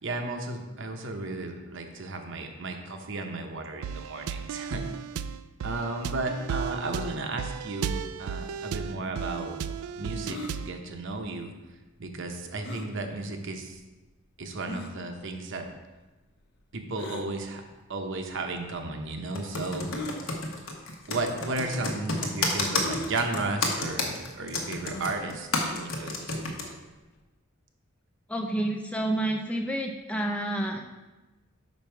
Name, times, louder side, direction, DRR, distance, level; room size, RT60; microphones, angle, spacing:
voice 1, 0.0-4.8 5.6-9.6 9.9-11.5 12.0-13.8 14.4-15.7 16.7-17.6 17.9-19.9 21.1-26.8, right 2 dB, 60° right, 4 dB, 0.8 m, -34 dB
sound 1, 3.8-10.8, right 7 dB, 85° right, 0.3 m, -35 dB
sound 2, 10.2-10.5 12.6-12.9 13.7-13.8 14.7-14.9 17.0-17.3 18.3-18.4 19.9-20.2 21.1-21.3 21.5-21.6 22.8-23.1 24.8-25.2, left 1 dB, 50° left, 0.6 m, -37 dB
Computer keyboard, 19.3-26.6, left 3 dB, 70° left, 1.0 m, -30 dB
voice 2, 28.3-30.9, right 1 dB, 5° left, 2 dB, 0.3 m, -29 dB
5.7 x 5.3 x 4.5 m, 1.2 s
head